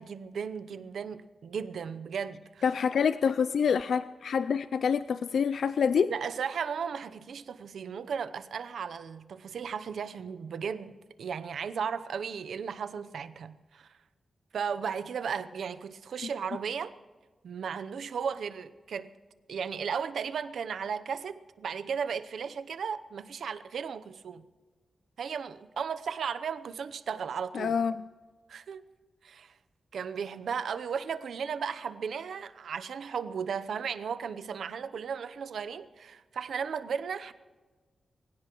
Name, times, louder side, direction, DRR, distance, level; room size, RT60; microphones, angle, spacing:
voice 1, 0.0-2.7 6.1-13.9 14.5-16.9 17.4-19.1 19.5-24.4 25.2-27.7 28.5-28.8 29.2-29.5 29.9-37.3, right 6 dB, 80° right, 0.8 m, -35 dB
voice 2, 2.6-6.1 27.5-28.0, left 6 dB, 70° left, 0.4 m, -26 dB
24.0 x 16.5 x 3.1 m
wide cardioid pair, 155°, 0 cm